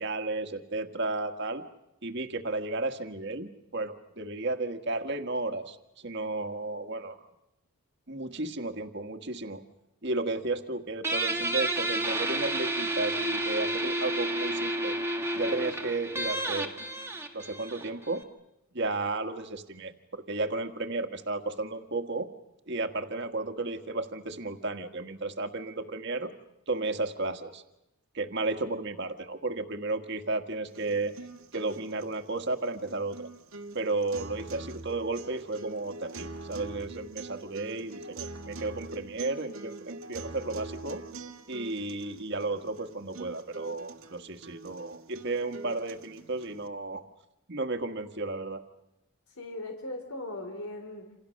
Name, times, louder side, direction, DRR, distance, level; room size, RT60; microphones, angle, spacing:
voice 1, 0.0-1.6 2.0-7.3 8.1-9.6 10.0-15.0 15.3-16.7 17.3-18.2 18.7-22.3 22.7-26.3 26.7-27.6 28.1-31.1 31.5-33.3 33.7-41.0 41.5-47.0 47.5-48.6, right 2 dB, 50° right, 7 dB, 1.7 m, -33 dB
Guitar, 11.0-18.2, right 1 dB, 10° right, 1.8 m, -31 dB
sound 1, 30.7-46.7, right 3 dB, 70° right, 1.7 m, -44 dB
voice 2, 49.4-51.2, left 2 dB, 80° left, 5 dB, 3.6 m, -39 dB
28.0 x 28.0 x 6.5 m, 0.91 s
head